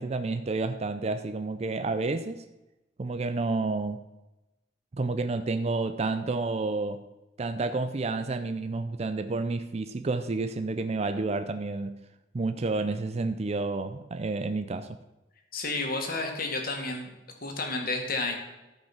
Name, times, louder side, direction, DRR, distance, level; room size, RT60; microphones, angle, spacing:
voice 1, 0.0-2.4 3.0-4.0 4.9-7.0 7.4-12.0 12.3-15.0, right 3 dB, 35° right, 9 dB, 0.4 m, -30 dB
voice 2, 15.5-17.1 17.4-18.4, left 3 dB, 55° left, 3 dB, 1.9 m, -31 dB
13.5 x 5.4 x 6.0 m, 1.0 s
head